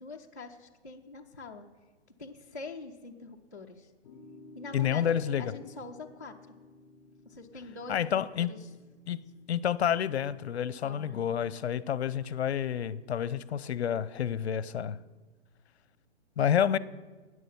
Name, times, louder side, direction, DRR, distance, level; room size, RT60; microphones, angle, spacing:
voice 1, 0.0-1.7 2.2-3.9 4.5-6.5 7.3-8.7 10.8-11.4, left 3 dB, 15° left, 0.4 m, -44 dB
sound 1, 4.0-10.4, left 2 dB, 35° left, 2.4 m, -55 dB
voice 2, 4.7-5.5 7.9-8.5 9.1-9.2 9.5-15.0 16.4-16.8, left 9 dB, 70° left, 0.7 m, -29 dB
12.5 x 9.7 x 7.0 m
hypercardioid pair, 175°, 34 cm